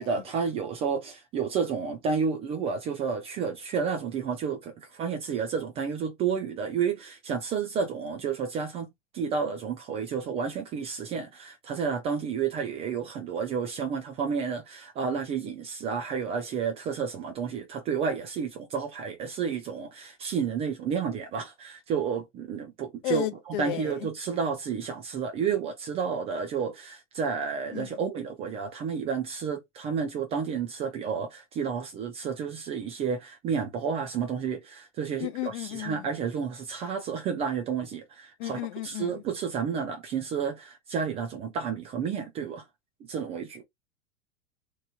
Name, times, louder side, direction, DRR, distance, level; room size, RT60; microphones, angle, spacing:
voice 1, 0.0-8.9 9.1-42.6 43.1-43.6, right 6 dB, 15° right, 0.4 m, -31 dB
voice 2, 23.0-24.1 27.7-28.0 35.2-36.1 38.4-39.2, left 15 dB, 45° left, 0.6 m, -33 dB
3.1 x 2.5 x 2.3 m
figure-of-eight pair, 95°, 37 cm